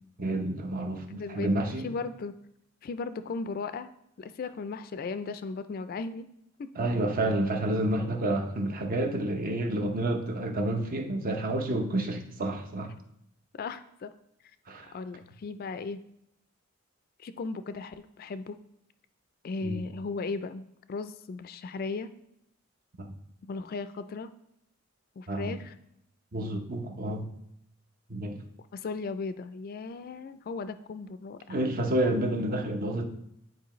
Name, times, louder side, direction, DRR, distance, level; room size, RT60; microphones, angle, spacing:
voice 1, 0.2-1.9 6.8-12.9 14.7-14.9 19.6-19.8 23.0-23.1 25.3-25.6 26.3-27.3 28.1-28.4 31.5-33.1, right 1 dB, 45° right, 4 dB, 0.7 m, -29 dB
voice 2, 1.1-1.5 1.8-2.3 2.8-3.9 4.2-6.3 6.6-6.7 13.6-14.1 14.9-16.0 17.2-18.6 19.4-22.1 23.4-24.3 25.2-25.7 28.7-31.6, left 4 dB, 45° left, 12 dB, 0.3 m, -36 dB
9.3 x 4.5 x 3.0 m, 0.77 s
head